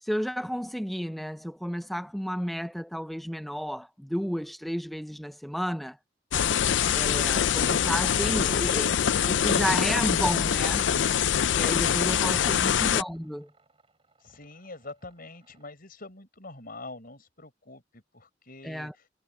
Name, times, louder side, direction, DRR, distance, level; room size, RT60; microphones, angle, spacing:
voice 1, 0.0-6.0 6.9-8.9 9.2-10.9 11.5-13.5 18.6-18.9, equal, ahead, 0.6 m, -32 dB
sound 1, 6.3-13.0, left 8 dB, 85° left, 0.5 m, -24 dB
sound 2, 10.1-15.7, right 3 dB, 30° right, 7.8 m, -66 dB
voice 2, 14.2-19.0, left 2 dB, 55° left, 5.1 m, -45 dB
head